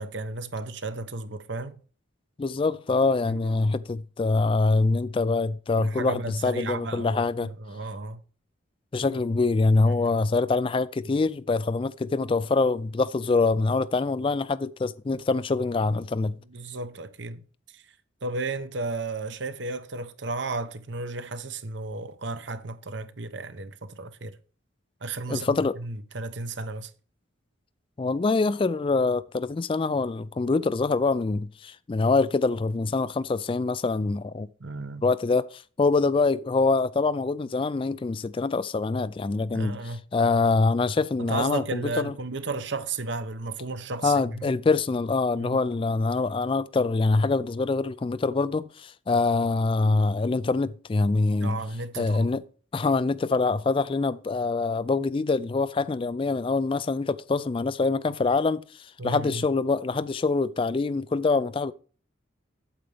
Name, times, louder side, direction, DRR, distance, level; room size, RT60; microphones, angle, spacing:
voice 1, 0.0-1.8 3.2-3.3 5.8-8.2 10.0-10.1 16.5-17.4 17.7-17.8 18.2-24.4 25.0-26.9 34.6-35.0 39.5-40.0 41.2-44.5 45.4-45.6 51.4-52.4 59.0-59.4, right 3 dB, 65° right, 0.9 m, -34 dB
voice 2, 2.4-7.5 8.9-16.4 25.3-25.7 28.0-34.5 35.0-39.8 40.1-42.1 44.0-51.6 52.0-52.4 52.7-61.7, left 3 dB, 25° left, 0.3 m, -25 dB
8.8 x 8.0 x 3.4 m
head